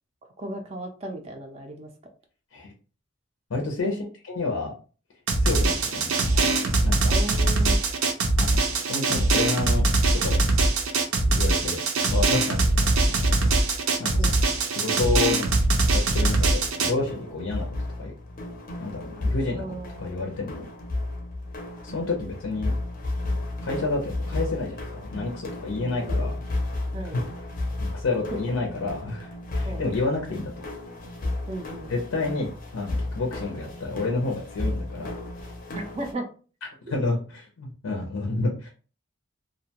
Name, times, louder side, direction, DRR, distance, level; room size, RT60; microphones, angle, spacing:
voice 1, 0.4-1.9 3.9-4.1 7.1-7.8 14.2-14.3 19.6-20.3 25.8-26.4 26.9-27.2 29.7-29.8 31.5-31.9 35.7-36.3, right 1 dB, 30° right, 4 dB, 0.4 m, -35 dB
voice 2, 3.5-4.0 4.2-4.7 5.4-6.5 6.8-7.1 8.4-8.6 8.9-9.8 10.1-10.4 11.2-11.8 12.1-13.5 14.0-14.4 14.7-15.5 15.9-17.7 18.0-18.1 18.8-19.7 20.0-20.7 21.8-22.7 23.6-26.4 27.1-27.2 27.8-30.7 31.9-35.2 36.9-38.7, left 3 dB, 85° left, 1 dB, 0.5 m, -29 dB
Drum, 5.3-16.9, right 2 dB, 85° right, 0.5 m, -22 dB
sound 1, 16.4-36.1, left 2 dB, 40° left, 0.5 m, -33 dB
2.5 x 2.2 x 2.8 m, 0.38 s
head